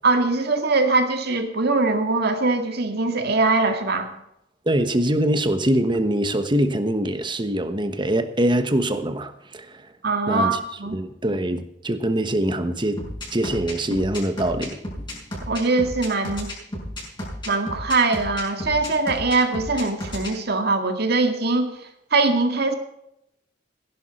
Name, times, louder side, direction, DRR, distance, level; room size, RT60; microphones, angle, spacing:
voice 1, 0.0-4.1 10.0-11.0 15.5-16.5 17.5-21.7 22.1-22.7, right 3 dB, 60° right, 2.0 m, -22 dB
voice 2, 4.7-9.9 10.3-10.6 10.9-13.0 13.3-14.8, right 1 dB, 25° right, 1.2 m, -23 dB
sound 1, 13.0-20.3, left 1 dB, 25° left, 5.7 m, -32 dB
15.5 x 11.5 x 4.3 m
head